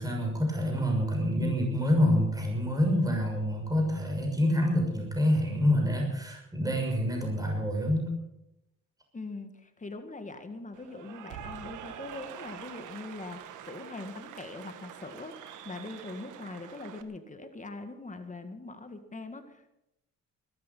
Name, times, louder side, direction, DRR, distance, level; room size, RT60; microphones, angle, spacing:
voice 1, 0.0-8.1, left 1 dB, 10° right, 1 dB, 6.5 m, -27 dB
voice 2, 9.1-19.7, left 3 dB, 25° left, 7 dB, 2.0 m, -42 dB
Cheering / Applause, 10.7-17.0, right 9 dB, 85° right, 1.5 m, -45 dB
20.0 x 13.0 x 5.6 m, 0.87 s
cardioid pair, 90°, 30 cm